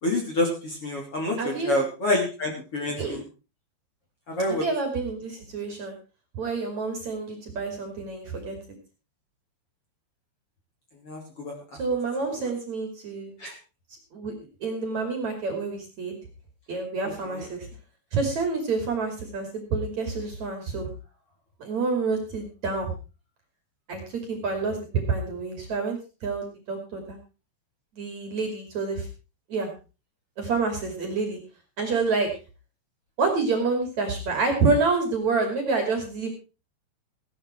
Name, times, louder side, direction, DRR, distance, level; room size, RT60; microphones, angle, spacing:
voice 1, 0.0-3.2 4.3-4.6 11.0-11.5 12.3-12.5 13.4-13.5 17.3-17.4, left 1 dB, 35° left, 0 dB, 3.2 m, -28 dB
voice 2, 1.4-1.8 3.0-3.2 4.6-6.0 6.3-8.6 11.8-13.3 14.1-14.3 14.6-16.2 16.7-17.7 18.1-20.9 21.6-22.9 23.9-27.2 28.0-29.1 29.5-29.7 30.4-31.4 31.8-32.3 33.2-36.3, right 4 dB, 45° right, 4 dB, 3.3 m, -28 dB
16.0 x 11.0 x 4.5 m, 0.33 s
omnidirectional pair, 5.5 m